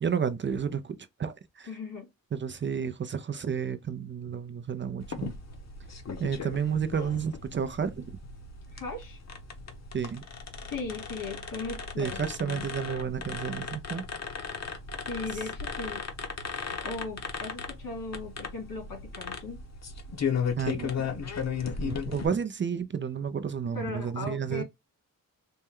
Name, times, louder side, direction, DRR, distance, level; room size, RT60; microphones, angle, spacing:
voice 1, 0.0-1.7 2.3-5.3 6.2-8.0 9.9-10.2 12.0-14.0 20.6-21.1 21.8-24.6, right 7 dB, 35° right, 0.4 m, -31 dB
voice 2, 1.7-2.1 8.7-9.2 10.7-12.7 15.1-16.1 16.8-19.6 23.7-24.6, left 3 dB, 80° left, 2.4 m, -38 dB
sound 1, 5.0-22.3, left 6 dB, 50° left, 0.8 m, -36 dB
4.3 x 2.1 x 3.5 m
wide cardioid pair, 130°, 34 cm